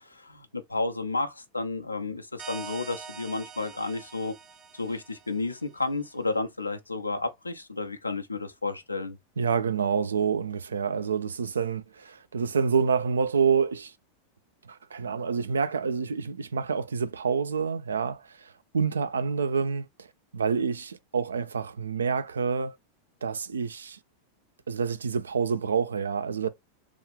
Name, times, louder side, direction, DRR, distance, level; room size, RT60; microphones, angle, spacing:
voice 1, 0.0-4.3 4.7-9.2, left 3 dB, 85° left, 0.6 m, -32 dB
sound 1, 2.4-5.8, right 6 dB, 30° right, 0.6 m, -44 dB
voice 2, 9.4-13.9 14.7-19.9 20.3-22.8 23.2-24.0 24.7-26.5, right 6 dB, 70° right, 0.4 m, -27 dB
3.5 x 2.4 x 3.1 m
figure-of-eight pair, 90°, 0 cm